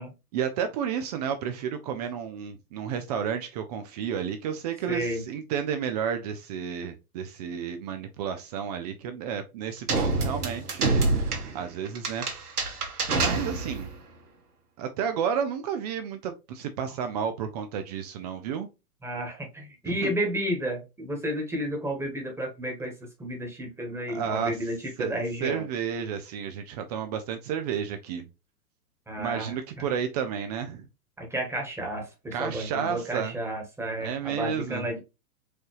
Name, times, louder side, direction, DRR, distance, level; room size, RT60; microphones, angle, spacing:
voice 1, 0.3-12.3 13.1-13.9 14.8-18.7 19.9-20.1 24.1-24.6 25.0-28.3 29.2-30.9 32.3-33.3 34.0-34.8, right 7 dB, 30° right, 0.4 m, -31 dB
voice 2, 4.9-5.2 19.0-22.9 23.2-25.6 29.1-29.5 29.8-29.9 31.2-35.0, equal, 5° right, 1.3 m, -32 dB
sound 1, 9.9-14.0, right 3 dB, 90° right, 1.5 m, -27 dB
4.7 x 2.7 x 3.1 m
hypercardioid pair, 120°, 44 cm